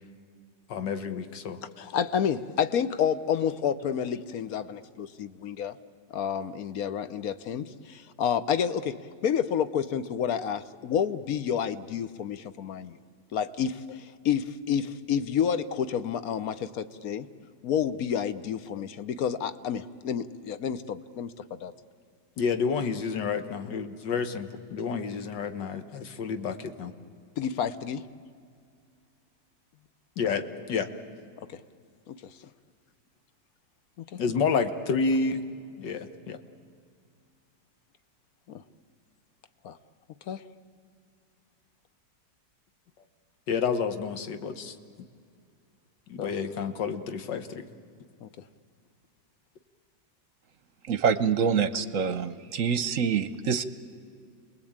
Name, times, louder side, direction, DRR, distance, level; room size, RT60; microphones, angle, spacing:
voice 1, 0.7-1.6 22.4-26.9 30.2-30.4 30.7-30.9 34.2-35.4 35.8-36.4 43.5-44.8 46.1-47.6, left 5 dB, 80° left, 9 dB, 1.9 m, -29 dB
voice 2, 1.8-5.7 6.1-13.0 13.3-17.3 17.6-21.7 27.4-28.1 32.1-32.3 34.1-34.2 38.5-38.6 39.6-39.8 40.3-40.4 46.2-46.3 48.2-48.3, left 8 dB, 60° left, 13 dB, 1.2 m, -29 dB
voice 3, 50.9-53.6, right 6 dB, 55° right, 13 dB, 1.0 m, -26 dB
28.5 x 20.5 x 8.8 m, 2.3 s
omnidirectional pair, 1.9 m